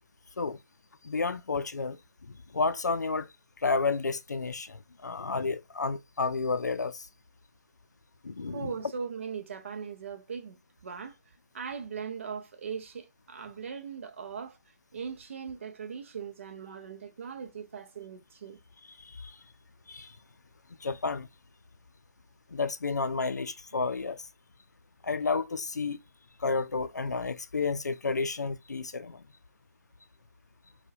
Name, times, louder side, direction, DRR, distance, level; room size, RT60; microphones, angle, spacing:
voice 1, 1.0-2.0 2.3-7.1 8.2-8.7 18.9-19.4 19.9-20.2 20.8-21.3 22.5-24.3 25.0-26.0 26.4-29.2, left 4 dB, 90° left, 0.4 m, -31 dB
voice 2, 8.5-11.1 11.5-14.6 14.9-18.6, right 6 dB, 45° right, 0.5 m, -39 dB
4.4 x 2.2 x 2.6 m
figure-of-eight pair, 155°, 9 cm